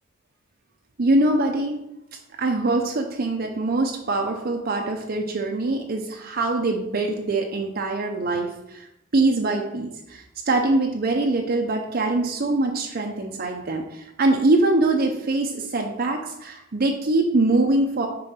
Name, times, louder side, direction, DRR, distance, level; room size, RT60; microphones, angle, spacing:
voice 1, 1.0-1.8 2.4-8.9 9.1-18.1, right 2 dB, 45° right, 2 dB, 0.6 m, -23 dB
5.3 x 3.8 x 5.6 m, 0.87 s
head